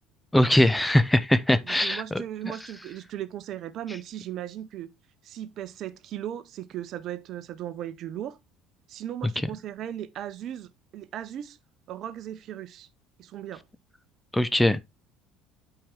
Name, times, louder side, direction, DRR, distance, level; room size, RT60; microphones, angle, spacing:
voice 1, 0.3-2.0 14.3-14.8, left 1 dB, 10° left, 0.7 m, -21 dB
voice 2, 1.6-4.9 5.2-8.4 8.9-11.6 11.9-12.9 13.2-13.6, right 11 dB, 55° right, 0.7 m, -37 dB
8.7 x 4.6 x 3.5 m
hypercardioid pair, 65°, 0 cm